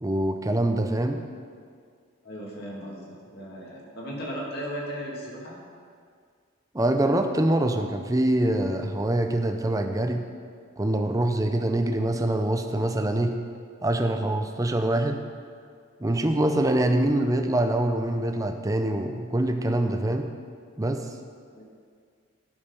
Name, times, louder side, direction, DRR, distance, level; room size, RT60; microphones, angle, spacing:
voice 1, 0.0-1.2 6.7-10.2 10.8-13.3 13.8-15.2 16.0-20.3 20.8-21.1, right 1 dB, 15° right, 5 dB, 0.5 m, -24 dB
voice 2, 2.2-5.6 21.5-21.6, equal, 50° left, -3 dB, 2.1 m, -36 dB
11.5 x 6.5 x 5.5 m, 2.1 s
head